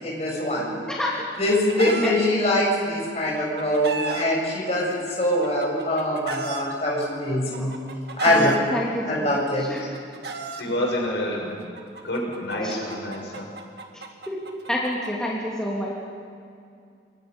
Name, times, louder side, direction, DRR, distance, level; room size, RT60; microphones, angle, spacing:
voice 1, 0.0-0.8 1.4-7.7 8.2-8.5 9.1-9.7 10.6-10.7, left 1 dB, 35° left, -3 dB, 7.0 m, -23 dB
voice 2, 0.9-1.2 1.9-2.1 7.6-7.7 8.3-9.8 12.6-12.7 14.3-14.4 14.7-15.9, equal, 5° left, -5 dB, 2.8 m, -28 dB
Chicken rooster, 1.0-2.1 3.2-4.2 5.2-6.6 7.5-8.6 9.6-10.6 11.8-15.1, right 3 dB, 60° right, 1.9 m, -33 dB
voice 3, 10.5-11.7 12.0-13.5, left 1 dB, 75° left, -2 dB, 6.8 m, -28 dB
27.5 x 23.5 x 5.4 m, 2.4 s
head